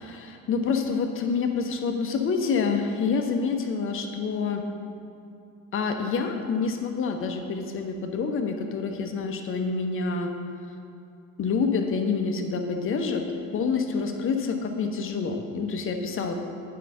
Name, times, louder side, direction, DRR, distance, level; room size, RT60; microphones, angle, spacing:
voice 1, 0.0-4.6 5.7-10.3 11.4-13.2 13.5-16.3, left 5 dB, 30° left, 5 dB, 0.7 m, -27 dB
9.2 x 5.8 x 3.6 m, 2.5 s
figure-of-eight pair, 60°, 42 cm